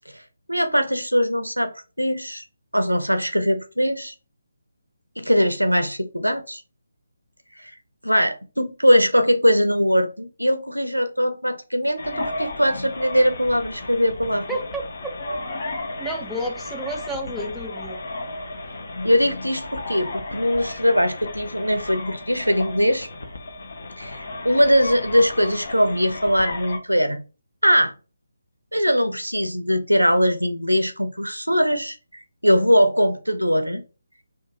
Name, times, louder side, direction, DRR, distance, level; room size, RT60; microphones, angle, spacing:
voice 1, 0.5-2.4 2.7-4.1 5.2-6.6 7.6-7.7 8.0-14.5 19.0-23.1 24.0-27.2 27.6-27.9 28.7-33.8, equal, 85° right, 0.6 m, -21 dB
sound 1, 12.0-26.8, left 2 dB, 45° left, 0.7 m, -34 dB
voice 2, 14.5-15.2 16.0-18.0, right 1 dB, ahead, 0.4 m, -30 dB
2.8 x 2.5 x 3.7 m
figure-of-eight pair, 145°, 0 cm